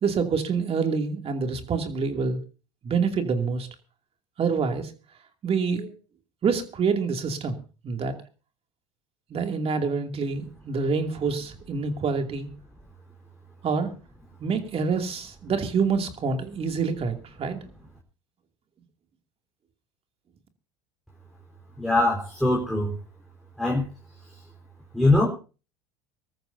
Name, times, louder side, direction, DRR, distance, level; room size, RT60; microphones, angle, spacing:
voice 1, 0.0-2.4 2.8-3.7 4.4-4.9 5.4-5.9 6.4-7.6 7.8-8.1 9.3-12.5 13.6-13.9 14.4-17.6, right 5 dB, 35° right, 5 dB, 2.6 m, -26 dB
voice 2, 21.8-22.9 23.6-23.9 24.9-25.3, left 2 dB, ahead, -2 dB, 4.0 m, -22 dB
24.5 x 13.5 x 2.7 m, 0.35 s
hypercardioid pair, 85°, 17 cm